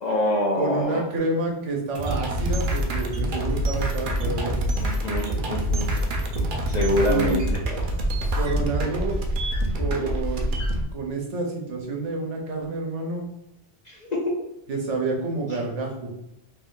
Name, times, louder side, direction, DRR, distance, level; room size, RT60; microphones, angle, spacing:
voice 1, 0.0-1.0 4.7-5.9 6.7-7.6 13.8-14.3 15.5-15.6, left 1 dB, 50° left, -2 dB, 0.5 m, -25 dB
voice 2, 0.6-4.6 7.0-7.4 8.3-9.2 9.7-10.6 10.9-13.3 14.7-16.1, right 3 dB, 80° right, 0 dB, 1.1 m, -28 dB
sound 1, 1.9-10.8, right 1 dB, 55° right, 0.6 m, -26 dB
3.0 x 2.6 x 3.6 m, 0.86 s
omnidirectional pair, 1.2 m